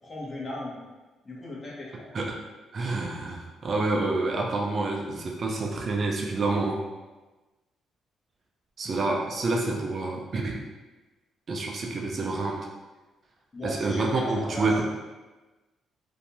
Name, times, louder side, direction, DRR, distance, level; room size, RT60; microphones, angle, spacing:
voice 1, 0.0-0.8 1.2-2.0 13.5-14.8, left 1 dB, 30° left, -5 dB, 0.9 m, -36 dB
voice 2, 2.7-6.8 8.8-10.6 11.5-12.7 13.6-14.8, right 3 dB, 45° right, 0 dB, 0.4 m, -28 dB
2.6 x 2.2 x 2.9 m, 1.2 s
cardioid pair, 90°, 0 cm